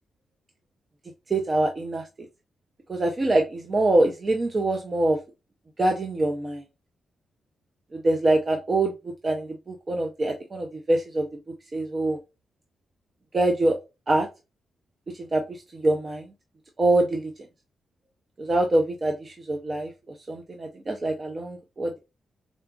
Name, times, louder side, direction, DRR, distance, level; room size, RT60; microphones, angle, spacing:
voice 1, 1.3-2.0 2.9-5.2 5.8-6.6 7.9-8.9 9.2-11.3 11.7-12.2 13.3-13.8 14.1-14.3 15.2-16.3 16.8-17.3 18.4-19.9 20.3-22.0, right 2 dB, 30° right, 2 dB, 0.4 m, -24 dB
3.8 x 2.3 x 2.2 m, 0.26 s
wide cardioid pair, 140°, 0 cm